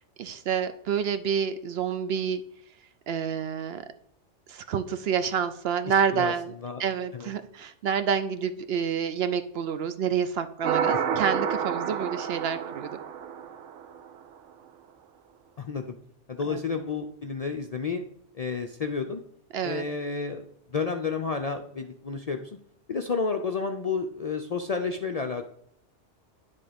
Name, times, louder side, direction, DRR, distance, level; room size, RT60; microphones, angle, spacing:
voice 1, 0.2-2.4 3.1-3.8 4.5-6.5 6.8-13.0 16.5-16.6 19.5-19.8, right 7 dB, 65° right, 10 dB, 0.7 m, -28 dB
voice 2, 6.1-6.8 7.1-7.3 15.6-16.0 16.3-18.0 18.3-19.2 19.6-20.5 20.7-22.6 22.9-25.5, left 5 dB, 50° left, 4 dB, 0.4 m, -31 dB
sound 1, 10.6-14.1, right 7 dB, 90° right, 1.0 m, -29 dB
10.0 x 3.7 x 5.1 m, 0.72 s
omnidirectional pair, 1.2 m